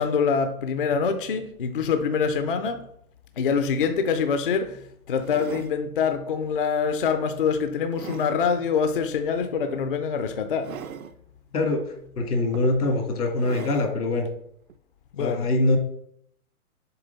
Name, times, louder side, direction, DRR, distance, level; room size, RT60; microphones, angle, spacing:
voice 1, 0.0-2.9 3.4-10.9 15.1-15.5, left 6 dB, 40° left, 8 dB, 0.4 m, -25 dB
sound 1, 3.9-4.1 5.2-5.8 6.4-6.7 7.2-8.4 9.7-9.9 10.6-11.1 12.0-12.1 12.5-13.0 13.4-13.9 14.7-14.8, right 8 dB, 65° right, 0.7 m, -40 dB
voice 2, 12.2-14.3 15.2-15.8, left 2 dB, 85° left, 4 dB, 2.0 m, -23 dB
6.8 x 3.9 x 3.9 m, 0.70 s
hypercardioid pair, 155°, 45 cm